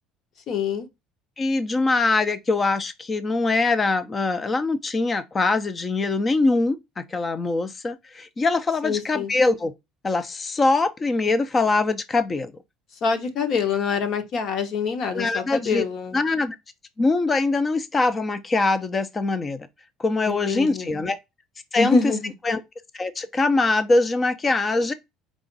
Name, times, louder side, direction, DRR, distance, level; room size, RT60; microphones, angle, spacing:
voice 1, 0.5-0.9 8.8-9.3 13.0-16.2 20.3-20.9 21.8-22.3, left 5 dB, 45° left, 1.0 m, -25 dB
voice 2, 1.4-9.7 10.0-12.5 15.1-15.9 16.1-16.6 17.0-19.7 20.0-21.2 21.7-22.1 22.4-22.6 22.9-24.9, left 3 dB, 20° left, 0.6 m, -23 dB
4.8 x 2.5 x 3.9 m
cardioid pair, 145°, 0 cm